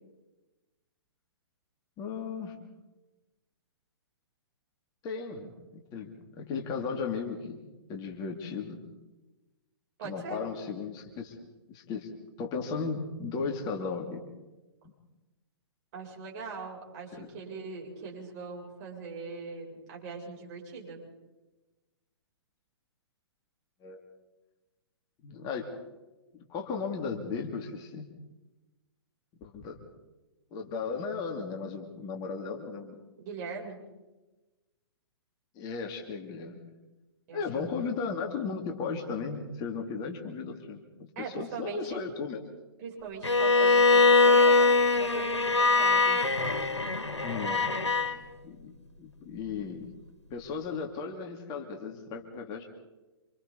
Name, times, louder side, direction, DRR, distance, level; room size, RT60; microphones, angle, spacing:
voice 1, 2.0-2.5 5.0-8.8 10.0-11.4 11.7-12.1 12.4-14.2 14.8-14.9 17.1-17.3 23.8-24.0 25.2-25.7 26.3-28.1 29.4-29.8 30.5-33.0 35.5-36.6 37.3-41.1 41.3-42.4 47.2-47.6 48.4-49.9 50.3-52.7, left 5 dB, 25° left, 2 dB, 2.7 m, -36 dB
voice 2, 10.0-10.4 15.9-21.0 33.2-33.8 37.3-37.9 41.1-42.0 42.8-46.2, right 5 dB, 40° right, -2 dB, 7.9 m, -41 dB
Bowed string instrument, 43.2-48.1, left 3 dB, 85° left, 2.2 m, -22 dB
28.0 x 27.0 x 4.2 m, 1.1 s
figure-of-eight pair, 120°, 14 cm